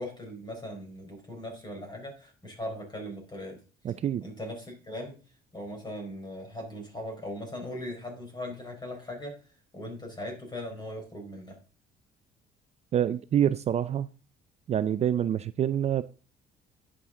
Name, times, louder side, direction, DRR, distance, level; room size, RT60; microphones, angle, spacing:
voice 1, 0.0-3.6 4.2-5.2 5.5-9.4 9.7-11.6, left 1 dB, 25° left, 4.3 m, -39 dB
voice 2, 3.8-4.2 12.9-14.1 14.7-16.0, right 10 dB, 40° right, 0.4 m, -26 dB
10.5 x 7.4 x 3.7 m
cardioid pair, 110°, 17 cm